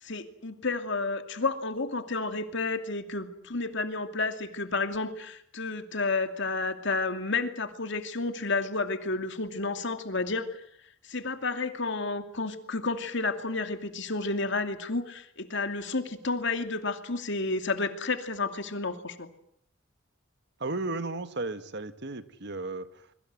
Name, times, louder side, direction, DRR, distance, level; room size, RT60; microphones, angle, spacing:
voice 1, 0.0-10.6 11.0-19.3, left 3 dB, 65° left, 8 dB, 2.6 m, -31 dB
voice 2, 20.6-23.1, right 2 dB, 60° right, 11 dB, 1.7 m, -34 dB
26.0 x 22.5 x 7.7 m, 0.67 s
head